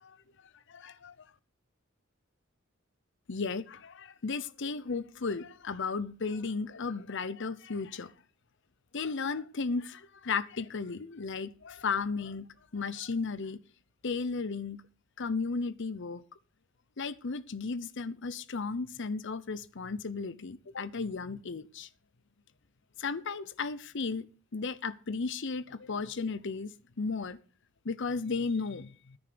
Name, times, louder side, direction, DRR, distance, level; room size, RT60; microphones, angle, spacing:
voice 1, 0.7-1.1 3.3-8.1 8.9-13.6 14.0-14.8 15.2-16.2 17.0-21.9 23.0-24.3 24.5-27.4 27.8-29.2, left 4 dB, 65° left, 0.8 m, -35 dB
9.9 x 9.9 x 6.8 m
head